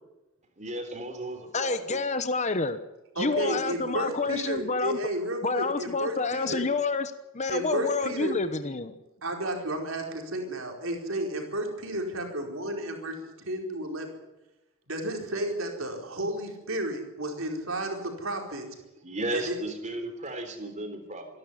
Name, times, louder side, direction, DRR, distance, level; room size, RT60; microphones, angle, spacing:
voice 1, 0.6-2.0 19.0-21.3, right 1 dB, 35° right, 7 dB, 3.6 m, -35 dB
voice 2, 1.5-2.8 3.2-5.0 5.4-8.9, left 3 dB, 35° left, 10 dB, 1.0 m, -28 dB
voice 3, 3.2-6.6 7.5-8.3 9.2-14.1 14.9-18.7 19.3-19.6, right 1 dB, 65° right, 2 dB, 4.7 m, -32 dB
26.0 x 12.5 x 10.0 m, 1.0 s
head